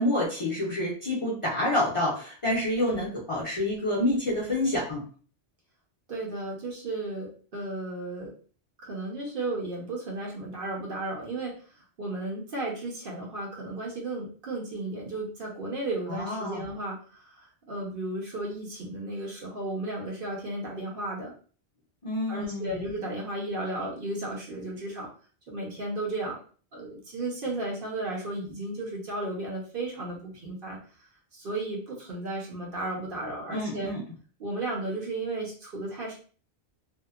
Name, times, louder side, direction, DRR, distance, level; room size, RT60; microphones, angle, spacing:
voice 1, 0.0-5.0 16.1-16.6 22.0-22.8 33.5-34.0, left 1 dB, 35° left, -6 dB, 0.6 m, -28 dB
voice 2, 6.1-8.3 8.8-11.5 12.0-21.3 22.3-25.1 25.5-26.4 26.7-30.8 31.3-33.9 34.4-36.1, right 2 dB, 55° right, -3 dB, 0.9 m, -34 dB
2.7 x 2.1 x 2.3 m, 0.41 s
omnidirectional pair, 1.2 m